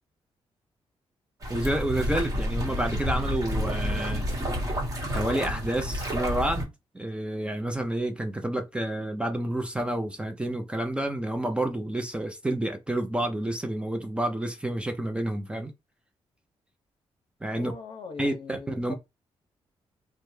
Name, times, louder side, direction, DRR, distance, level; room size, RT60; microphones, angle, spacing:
sound 1, 1.4-6.6, equal, 35° right, 1.0 m, -29 dB
voice 1, 1.5-4.2 5.1-15.7 17.4-17.7 18.2-18.9, right 1 dB, 10° right, 0.4 m, -29 dB
voice 2, 17.5-18.9, left 4 dB, 60° left, 0.7 m, -41 dB
3.2 x 2.1 x 3.1 m
wide cardioid pair, 145°, 10 cm